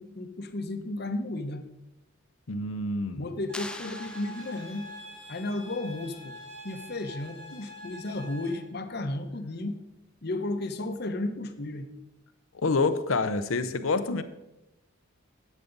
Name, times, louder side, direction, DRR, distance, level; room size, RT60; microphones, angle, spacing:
voice 1, 0.0-1.6 3.1-4.9 5.3-6.3 6.6-9.8 10.2-11.9, left 2 dB, 50° left, 8 dB, 0.9 m, -33 dB
voice 2, 2.5-3.3 12.5-14.2, left 3 dB, 80° left, 12 dB, 0.7 m, -27 dB
sound 1, 3.5-5.0, left 2 dB, 5° left, 0.3 m, -43 dB
sound 2, 3.5-8.5, left 1 dB, 65° right, 2.3 m, -45 dB
10.5 x 8.3 x 4.0 m, 0.94 s
head